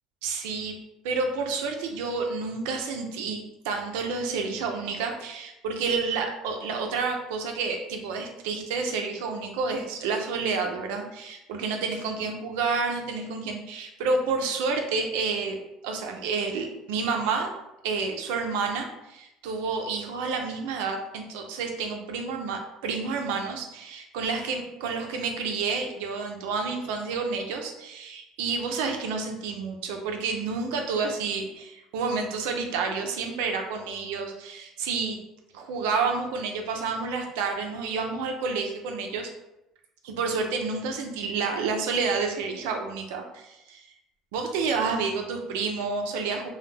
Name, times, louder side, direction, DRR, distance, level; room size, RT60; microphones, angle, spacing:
voice 1, 0.2-0.7 1.0-17.5 17.8-35.2 35.5-39.3 40.0-43.9 44.3-46.5, right 4 dB, 85° right, 3 dB, 0.4 m, -29 dB
2.2 x 2.1 x 3.2 m, 0.90 s
supercardioid pair, 85°, 0 cm